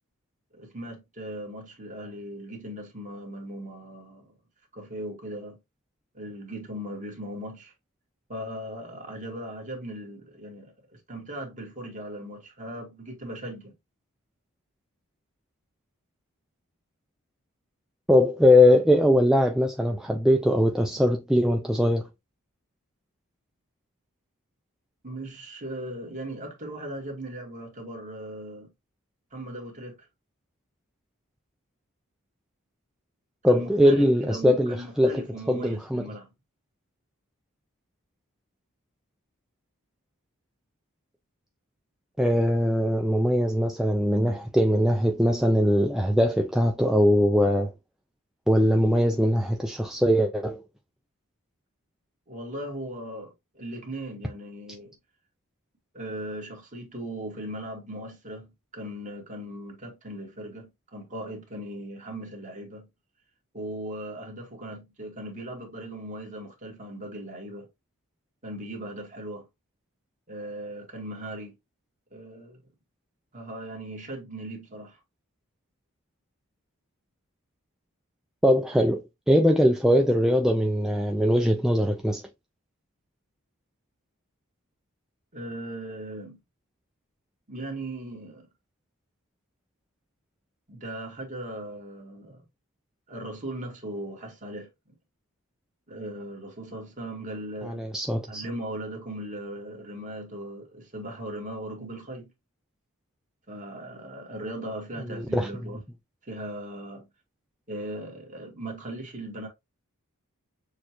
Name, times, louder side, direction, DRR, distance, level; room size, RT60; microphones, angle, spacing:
voice 1, 0.5-4.3 4.7-5.6 6.1-7.7 8.3-13.7 25.0-28.7 29.3-30.1 33.4-36.3 52.3-54.9 55.9-62.9 63.5-67.7 68.4-69.4 70.3-71.6 72.1-72.6 73.3-75.0 85.3-86.4 87.5-88.5 90.7-92.4 93.1-94.7 95.9-97.8 98.3-102.3 103.5-105.8 106.2-107.1 107.7-109.5, right 1 dB, 35° right, 1.6 m, -38 dB
voice 2, 18.1-22.1 33.4-36.0 42.2-47.7 48.5-50.6 78.4-82.2 97.6-98.4 105.2-105.5, equal, ahead, 0.3 m, -21 dB
6.4 x 2.3 x 2.9 m
head